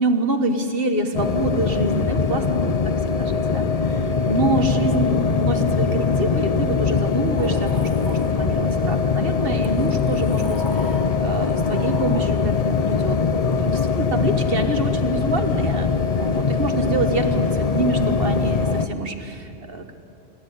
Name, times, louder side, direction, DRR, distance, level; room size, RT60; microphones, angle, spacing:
voice 1, 0.0-15.9 16.2-19.9, right 2 dB, 45° right, 7 dB, 1.5 m, -26 dB
sound 1, 1.1-18.9, left 5 dB, 40° left, 0.6 m, -22 dB
Sliding door, 7.4-8.9 9.6-14.3, left 1 dB, 20° left, 1.5 m, -39 dB
27.5 x 12.0 x 9.4 m, 2.7 s
omnidirectional pair, 1.3 m